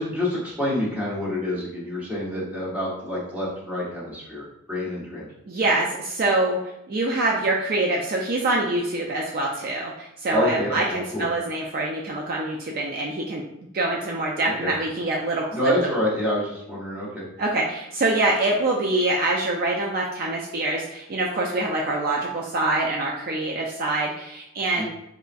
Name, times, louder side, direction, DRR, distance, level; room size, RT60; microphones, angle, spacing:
voice 1, 0.0-5.2 10.3-11.2 14.4-14.7 15.5-17.2 24.8-24.9, left 1 dB, 5° right, -8 dB, 1.0 m, -27 dB
voice 2, 5.5-6.6 6.9-13.4 13.7-15.7 17.4-24.8, right 2 dB, 45° right, -2 dB, 0.4 m, -25 dB
4.2 x 2.3 x 2.5 m, 0.82 s
head